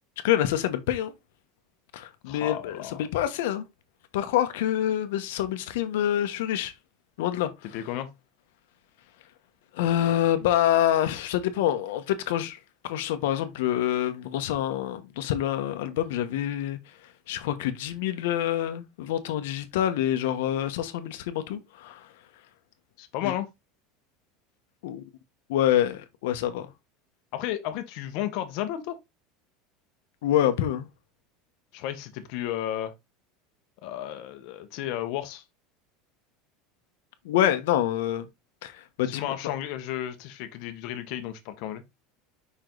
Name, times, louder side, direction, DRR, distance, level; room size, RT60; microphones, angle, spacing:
voice 1, 0.2-1.1 1.9-2.8 3.1-3.6 4.1-6.7 7.2-7.5 9.7-12.6 12.8-16.8 17.3-22.0 23.2-23.3 24.8-25.0 25.5-26.7 30.2-30.9 37.2-38.2 38.6-38.7 39.0-39.5, left 11 dB, 80° left, 1.1 m, -26 dB
voice 2, 2.3-3.0 7.7-8.1 23.0-23.5 27.3-29.0 31.7-32.9 33.8-35.4 39.0-41.8, left 12 dB, 50° left, 1.2 m, -33 dB
5.5 x 5.0 x 3.8 m
cardioid pair, 175°, 0 cm